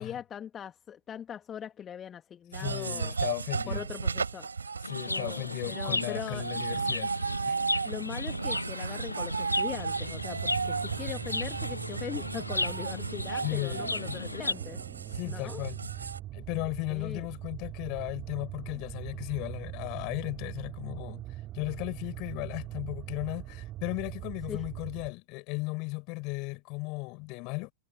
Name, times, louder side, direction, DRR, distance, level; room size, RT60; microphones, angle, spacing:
voice 1, 0.0-3.1 3.7-4.5 5.1-6.5 7.8-14.8 15.2-15.6 16.9-17.3 24.5-24.6, left 9 dB, 20° left, 2.6 m, -40 dB
sound 1, 2.5-16.2, right 5 dB, 75° right, 4.2 m, -34 dB
voice 2, 2.6-3.8 4.8-7.1 7.4-7.6 13.4-14.3 15.1-15.8 16.3-21.3 21.5-27.7, left 28 dB, 40° left, 6.6 m, -36 dB
Chirp tweet, 4.8-14.5, left 3 dB, 80° left, 1.3 m, -35 dB
sound 2, 9.7-25.1, right 15 dB, 30° right, 4.0 m, -42 dB
figure-of-eight pair, 100°, 0 cm